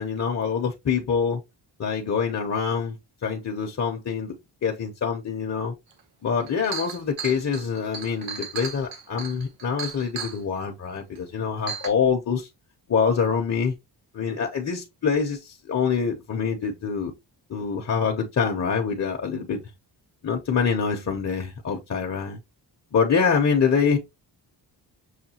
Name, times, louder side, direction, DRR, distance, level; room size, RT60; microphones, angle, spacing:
voice 1, 0.0-1.4 1.8-2.9 3.2-4.3 4.6-5.7 6.2-12.5 12.9-13.7 14.1-17.1 17.5-19.6 20.2-22.4 22.9-24.0, left 6 dB, 40° left, 0.7 m, -25 dB
Chink clink, 6.0-6.1 6.4-10.4 11.1-11.2 11.7-11.9, right 6 dB, 85° right, 1.0 m, -35 dB
6.4 x 2.2 x 2.8 m
wide cardioid pair, 140°, 43 cm